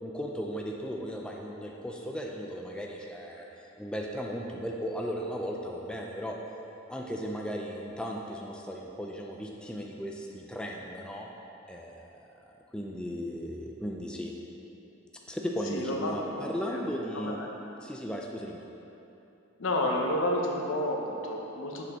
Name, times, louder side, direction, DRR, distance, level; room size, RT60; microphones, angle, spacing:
voice 1, 0.0-3.5 3.8-6.4 6.9-11.3 11.7-12.0 12.7-14.4 15.3-17.4 17.8-18.6, equal, 5° left, -1 dB, 0.3 m, -36 dB
voice 2, 15.7-16.9 17.1-17.5 19.6-21.8, left 1 dB, 70° left, 0 dB, 0.8 m, -31 dB
6.3 x 5.3 x 3.6 m, 3.0 s
head